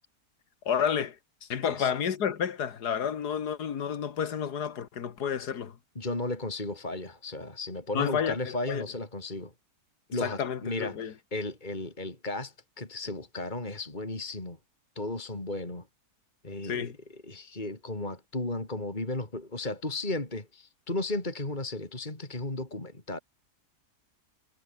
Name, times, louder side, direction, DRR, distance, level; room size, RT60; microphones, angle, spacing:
voice 1, 0.7-5.8 7.9-8.9 10.1-11.1 16.6-17.0, left 8 dB, 80° left, 2.1 m, -31 dB
voice 2, 6.0-9.5 10.1-11.0 11.3-14.6 15.0-15.8 16.4-16.9 17.3-23.2, left 2 dB, 25° left, 3.8 m, -34 dB
omnidirectional pair, 1.7 m